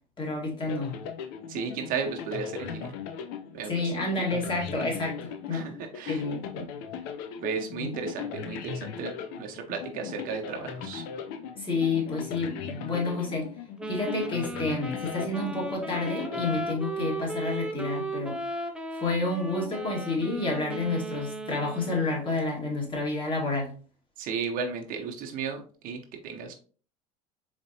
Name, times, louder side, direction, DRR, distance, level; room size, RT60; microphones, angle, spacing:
voice 1, 0.2-1.0 3.7-5.7 6.1-6.7 7.8-7.9 11.6-13.5 13.9-18.4 18.9-23.7, left 3 dB, 30° left, -2 dB, 1.8 m, -29 dB
sound 1, 0.7-17.2, left 7 dB, 65° left, 0.6 m, -39 dB
voice 2, 1.5-3.0 3.5-3.9 5.5-6.2 7.4-11.0 24.2-26.5, right 5 dB, 50° right, 3 dB, 0.7 m, -34 dB
Wind instrument woodwind instrument, 13.8-22.3, right 1 dB, 5° right, 0.5 m, -36 dB
4.2 x 2.9 x 2.8 m, 0.40 s
supercardioid pair, 110°, 18 cm